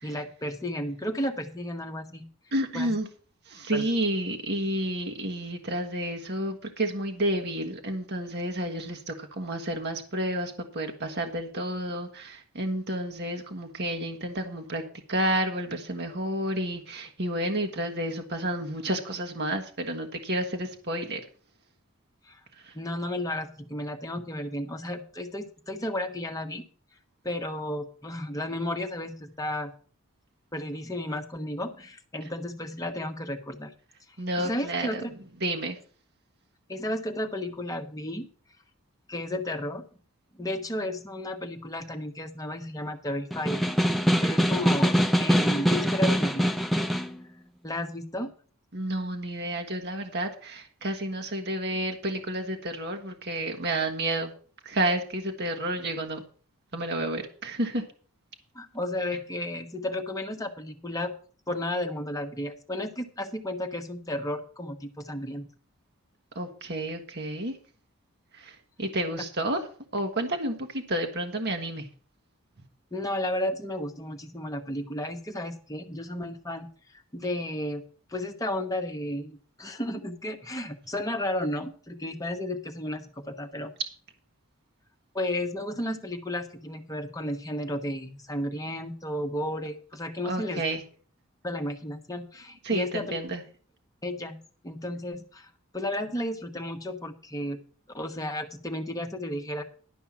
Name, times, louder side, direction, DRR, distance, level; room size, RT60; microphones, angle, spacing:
voice 1, 0.0-2.2 2.7-2.9 3.7-3.9 22.3-22.4 22.7-26.6 27.2-29.7 30.5-33.7 34.4-35.1 36.7-38.3 39.1-39.8 40.4-43.6 44.2-46.8 47.6-48.3 58.5-61.1 61.5-65.5 72.9-76.7 77.1-77.8 78.1-83.7 85.1-90.6 91.4-93.2 94.0-94.4 94.6-97.6 97.9-99.6, left 1 dB, 15° left, 4 dB, 1.1 m, -33 dB
voice 2, 2.5-3.1 3.5-14.8 15.1-21.2 22.6-22.7 34.2-35.0 35.4-35.8 48.7-54.3 54.6-56.2 56.7-57.8 66.3-67.6 68.3-69.6 69.9-71.9 90.2-90.8 92.6-93.4, right 1 dB, 50° right, 4 dB, 1.3 m, -30 dB
Snare drum, 43.3-47.2, equal, ahead, 0.6 m, -23 dB
11.5 x 5.4 x 7.2 m, 0.42 s
head